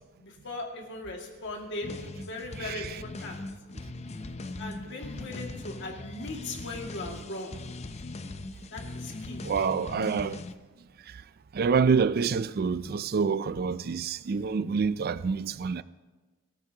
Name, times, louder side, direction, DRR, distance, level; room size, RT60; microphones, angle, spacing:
voice 1, 0.2-2.0 2.3-3.4 4.6-7.6 8.7-9.4, left 2 dB, 60° left, 2.1 m, -38 dB
sound 1, 1.8-10.5, left 2 dB, 30° left, 0.5 m, -40 dB
voice 2, 9.4-10.4 11.5-15.8, right 5 dB, 45° right, 0.4 m, -27 dB
21.5 x 13.5 x 2.9 m
head